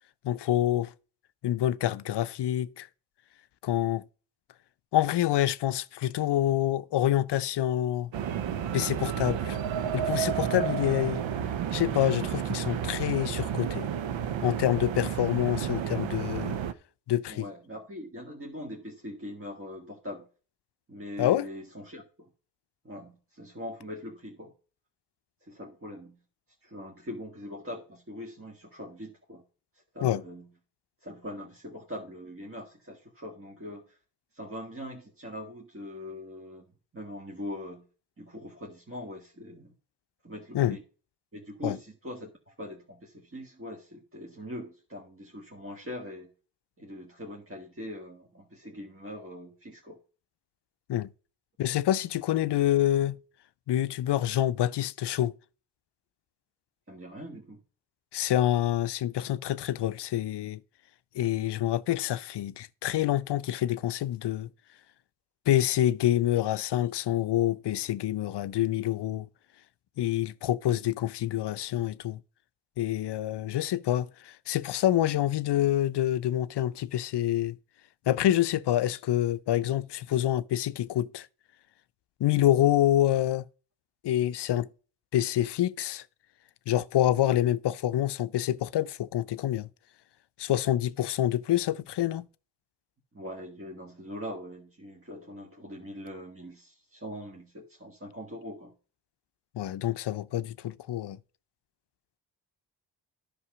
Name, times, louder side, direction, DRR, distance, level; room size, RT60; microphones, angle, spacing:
voice 1, 0.2-0.9 1.4-2.9 3.6-4.0 4.9-8.1 8.7-9.6 9.9-11.2 11.7-13.9 14.4-16.6 17.1-17.5 21.2-21.5 30.0-30.2 40.5-40.8 41.6-41.8 50.9-51.1 51.6-53.2 53.7-55.3 58.1-60.6 61.2-64.5 65.5-69.3 70.0-72.2 72.8-77.6 78.1-81.3 82.2-83.4 84.0-84.7 85.1-86.0 86.7-89.7 90.4-92.2 99.5-101.2, left 13 dB, 60° left, 0.6 m, -27 dB
sound 1, 8.1-16.7, right 9 dB, 80° right, 0.8 m, -31 dB
voice 2, 17.3-20.3 20.9-22.3 22.8-24.5 25.4-26.2 26.6-29.4 29.9-30.5 31.0-34.0 34.3-36.6 36.9-37.8 38.2-39.7 40.2-40.8 41.3-46.3 46.8-50.0 56.9-57.6 93.1-98.7, left 1 dB, 30° right, 1.7 m, -42 dB
9.8 x 5.3 x 6.0 m
supercardioid pair, 45°, 46 cm